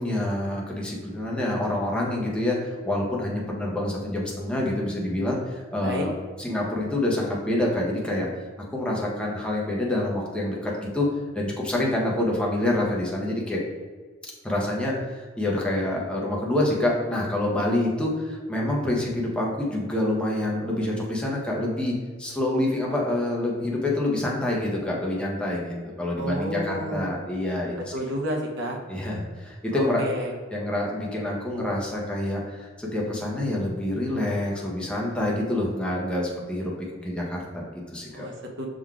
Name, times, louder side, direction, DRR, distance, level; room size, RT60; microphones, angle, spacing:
voice 1, 0.0-6.1 6.4-8.3 8.7-11.1 11.3-13.6 14.4-27.8 28.9-30.1 30.5-36.7 37.0-38.3, left 1 dB, 5° left, -4 dB, 0.8 m, -27 dB
voice 2, 26.1-27.1 27.9-28.8 29.7-30.3 38.1-38.7, equal, 65° right, 0 dB, 0.7 m, -30 dB
6.1 x 3.7 x 2.3 m, 1.4 s
head